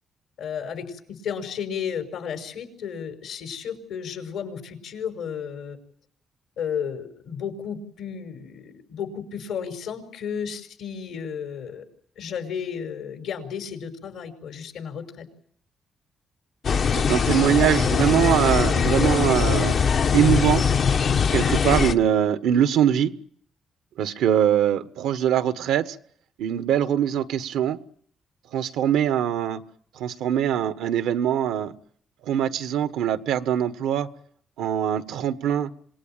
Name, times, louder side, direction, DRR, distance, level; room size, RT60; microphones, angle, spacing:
voice 1, 0.4-5.8 6.6-11.8 12.2-15.2, left 7 dB, 80° left, 6 dB, 5.7 m, -33 dB
sound 1, 16.6-21.9, left 6 dB, 60° left, 1.4 m, -21 dB
voice 2, 16.9-19.8 20.1-20.6 21.3-23.1 24.0-25.9 26.4-27.8 28.5-29.6 30.0-31.7 32.3-34.1 34.6-35.7, right 10 dB, 85° right, 11 dB, 1.4 m, -22 dB
26.5 x 19.5 x 9.1 m, 0.64 s
supercardioid pair, 55°, 0 cm